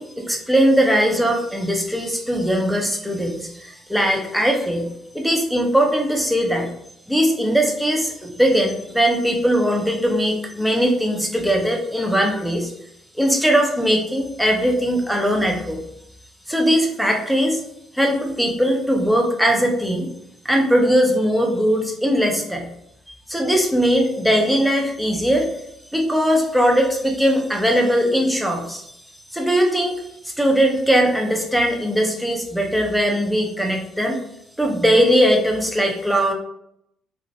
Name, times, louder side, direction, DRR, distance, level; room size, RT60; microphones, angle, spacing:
voice 1, 0.0-4.9 5.1-6.7 7.1-12.7 13.2-15.8 16.5-17.6 17.9-20.1 20.4-22.7 23.3-25.5 25.9-28.8 29.3-34.2 34.6-36.3, equal, ahead, 1 dB, 0.7 m, -20 dB
2.9 x 2.6 x 2.7 m, 0.76 s
figure-of-eight pair, 50°, 0 cm